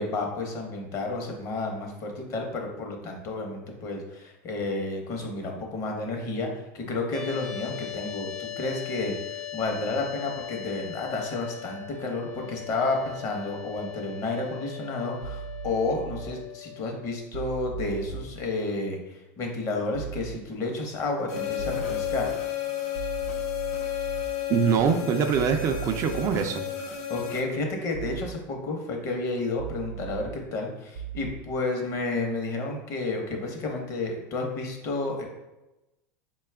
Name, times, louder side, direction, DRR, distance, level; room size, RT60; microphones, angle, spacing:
voice 1, 0.0-22.3 27.1-35.2, left 2 dB, 40° left, 2 dB, 0.8 m, -31 dB
sound 1, 7.1-17.2, left 11 dB, 15° left, 0.5 m, -39 dB
sound 2, 15.2-16.2 17.3-18.2 19.9-20.2 21.6-22.2 22.9-24.2 25.3-26.2 27.9-28.2 29.6-30.2 30.9-31.3, right 9 dB, 90° right, 0.6 m, -37 dB
sound 3, 21.3-27.4, left 11 dB, 75° left, 0.7 m, -32 dB
voice 2, 24.5-26.6, right 6 dB, 40° right, 6 dB, 0.3 m, -24 dB
4.2 x 2.3 x 3.3 m, 0.98 s
supercardioid pair, 130°, 8 cm